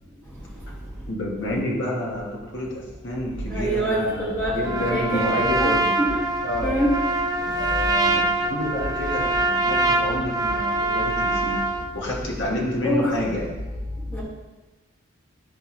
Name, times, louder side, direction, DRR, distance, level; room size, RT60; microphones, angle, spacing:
voice 1, 1.1-6.0 6.4-6.8 7.6-11.6 11.9-13.6, left 1 dB, 60° left, -3 dB, 2.0 m, -29 dB
voice 2, 3.5-5.7 6.0-6.2 6.6-6.9 12.8-13.1 14.1-14.2, equal, 10° left, -9 dB, 2.4 m, -25 dB
Trumpet, 4.6-11.9, right 2 dB, 20° right, 0.4 m, -24 dB
13.5 x 4.7 x 3.4 m, 1.2 s
head